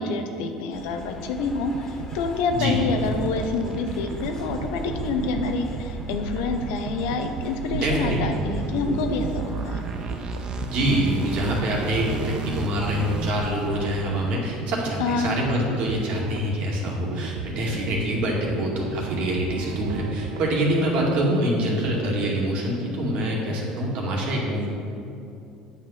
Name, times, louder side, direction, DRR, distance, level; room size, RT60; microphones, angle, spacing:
voice 1, 0.0-9.8 15.0-15.5, left 4 dB, 80° left, 6 dB, 0.9 m, -27 dB
sound 1, 0.7-14.3, left 1 dB, 20° left, 1.9 m, -40 dB
sound 2, 1.7-21.3, right 8 dB, 85° right, 0.4 m, -37 dB
voice 2, 2.5-2.8 7.7-8.4 10.7-24.7, equal, 60° right, -2 dB, 2.2 m, -25 dB
sound 3, 2.9-13.7, right 4 dB, 40° right, 0.7 m, -34 dB
9.1 x 5.9 x 5.8 m, 2.7 s
supercardioid pair, 105°, 2 cm